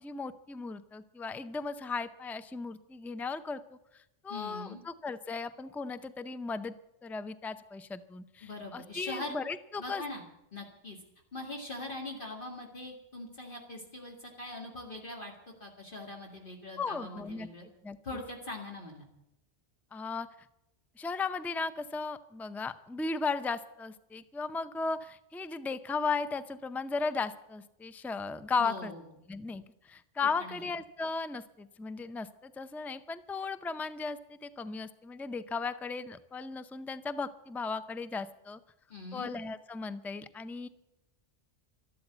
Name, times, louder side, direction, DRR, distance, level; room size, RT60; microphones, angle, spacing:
voice 1, 0.0-3.8 4.2-6.7 7.0-10.0 16.8-17.5 17.8-18.0 19.9-20.3 21.0-28.9 29.3-38.6 39.1-40.7, left 4 dB, 5° left, 13 dB, 0.3 m, -36 dB
voice 2, 4.3-4.8 8.4-9.3 9.8-10.2 10.5-11.0 11.3-15.3 15.6-17.7 18.0-19.0 28.6-29.0 30.4-30.7 38.9-39.3, left 2 dB, 50° left, 0 dB, 2.3 m, -42 dB
12.5 x 12.5 x 7.9 m, 0.87 s
omnidirectional pair, 1.2 m